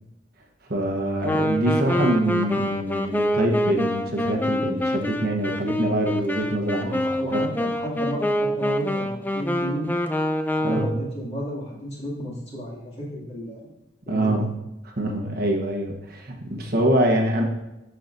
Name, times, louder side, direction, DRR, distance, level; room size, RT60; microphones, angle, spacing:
voice 1, 0.7-7.0 7.3-7.7 10.6-10.8 14.1-14.5 15.0-17.4, right 1 dB, 55° right, 1 dB, 1.1 m, -24 dB
Wind instrument woodwind instrument, 1.2-11.1, equal, 10° left, 0.4 m, -26 dB
voice 2, 6.8-9.9 10.6-13.7 14.1-14.5 16.9-17.1, equal, 35° left, -5 dB, 2.4 m, -33 dB
11.5 x 5.7 x 2.7 m, 0.95 s
head